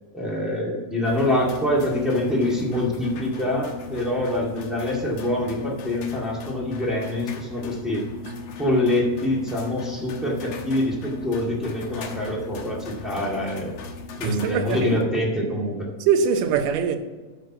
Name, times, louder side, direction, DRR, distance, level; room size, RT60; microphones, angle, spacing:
voice 1, 0.1-8.0 8.6-13.7 14.2-15.9, left 1 dB, ahead, 0.7 m, -25 dB
sound 1, 1.0-15.0, left 4 dB, 65° left, 1.7 m, -37 dB
voice 2, 14.2-14.9 16.1-17.0, right 7 dB, 75° right, 2.4 m, -22 dB
13.0 x 4.5 x 6.0 m
omnidirectional pair, 4.0 m